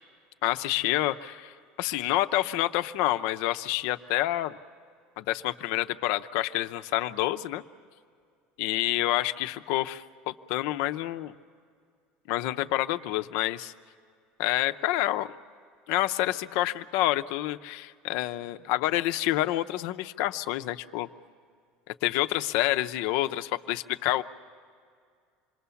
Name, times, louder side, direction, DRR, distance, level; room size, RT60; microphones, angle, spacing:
voice 1, 0.4-1.5 1.8-4.6 5.2-7.6 8.6-11.3 12.3-13.7 14.4-15.3 15.9-21.1 21.9-24.2, left 15 dB, 65° left, 9 dB, 0.6 m, -28 dB
27.0 x 21.5 x 7.0 m, 2.2 s
cardioid pair, 170°, 3 cm